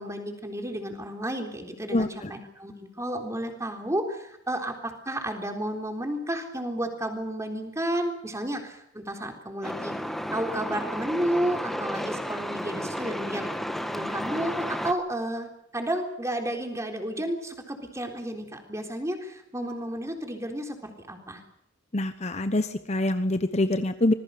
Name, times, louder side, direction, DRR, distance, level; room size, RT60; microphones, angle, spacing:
voice 1, 0.0-9.9 10.3-13.4 13.9-21.4, right 1 dB, 15° right, 4 dB, 3.8 m, -32 dB
voice 2, 1.9-2.3 21.9-24.1, left 1 dB, 35° left, 10 dB, 1.0 m, -25 dB
Truck, 9.6-14.9, equal, ahead, 1.4 m, -32 dB
26.0 x 20.5 x 6.8 m, 0.75 s
head